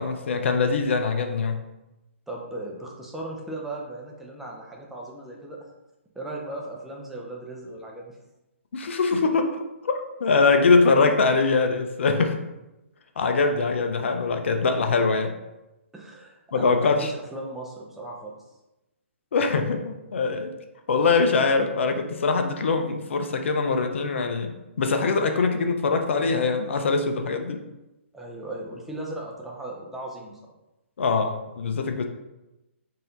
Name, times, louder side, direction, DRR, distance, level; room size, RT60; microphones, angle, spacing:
voice 1, 0.0-1.6 8.7-9.6 9.8-12.4 13.2-15.3 16.5-17.1 19.3-20.5 20.9-24.5 24.8-27.6 31.0-32.0, left 4 dB, 65° left, 6 dB, 0.6 m, -23 dB
voice 2, 2.3-5.7 6.1-8.2 15.9-18.4 28.1-30.4, right 2 dB, 5° right, -2 dB, 0.6 m, -37 dB
4.1 x 2.7 x 3.8 m, 0.97 s
hypercardioid pair, 145°, 7 cm